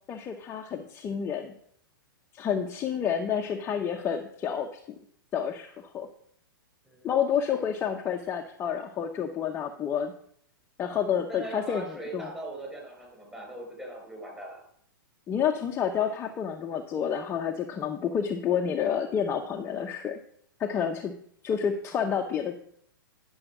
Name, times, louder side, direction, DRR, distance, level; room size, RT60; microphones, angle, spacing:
voice 1, 0.1-1.5 2.3-5.0 5.3-6.1 7.0-10.1 10.8-12.3 15.3-20.2 20.6-21.1 21.4-22.6, left 8 dB, 20° left, 2 dB, 0.8 m, -29 dB
voice 2, 11.3-14.6, right 1 dB, 5° right, 0 dB, 4.4 m, -40 dB
10.5 x 6.3 x 6.0 m, 0.64 s
hypercardioid pair, 120°, 12 cm